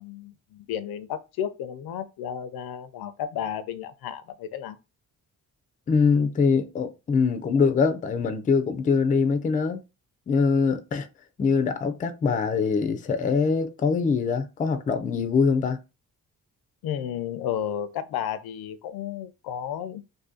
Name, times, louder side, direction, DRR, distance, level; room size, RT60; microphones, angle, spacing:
voice 1, 0.0-4.8 16.8-20.0, left 9 dB, 90° left, 0.5 m, -32 dB
voice 2, 5.9-9.8 10.3-11.1 11.4-15.8, left 5 dB, 25° left, 0.3 m, -23 dB
2.7 x 2.6 x 3.6 m
cardioid pair, 170°, 36 cm